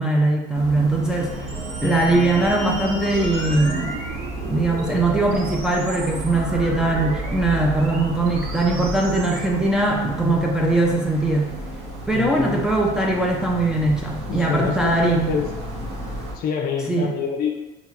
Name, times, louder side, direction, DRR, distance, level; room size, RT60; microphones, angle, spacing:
voice 1, 0.0-1.3 1.8-4.0 4.4-11.5 12.1-15.4 16.9-17.1, right 2 dB, 5° right, -2 dB, 0.4 m, -21 dB
sound 1, 0.5-16.3, right 1 dB, 35° right, 1.0 m, -33 dB
sound 2, 1.0-5.4, left 1 dB, 20° left, 0.8 m, -37 dB
sound 3, 1.5-9.5, right 2 dB, 55° right, 0.6 m, -34 dB
voice 2, 12.1-12.7 14.3-15.9 16.3-17.6, left 7 dB, 50° left, 3 dB, 0.6 m, -27 dB
2.9 x 2.3 x 4.1 m, 1.0 s
cardioid pair, 130°, 19 cm